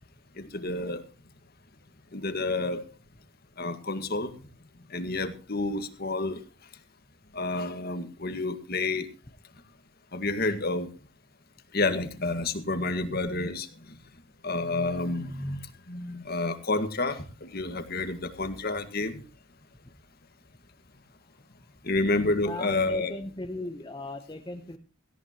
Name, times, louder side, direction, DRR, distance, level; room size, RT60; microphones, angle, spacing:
voice 1, 0.4-1.0 2.1-2.8 3.6-4.3 4.9-6.4 7.3-9.1 10.1-10.9 11.7-13.7 14.4-15.6 15.9-19.2 21.8-23.1, left 2 dB, 45° left, 9 dB, 1.8 m, -29 dB
voice 2, 22.4-24.8, left 1 dB, 20° left, 5 dB, 0.9 m, -37 dB
17.5 x 17.0 x 3.0 m, 0.34 s
head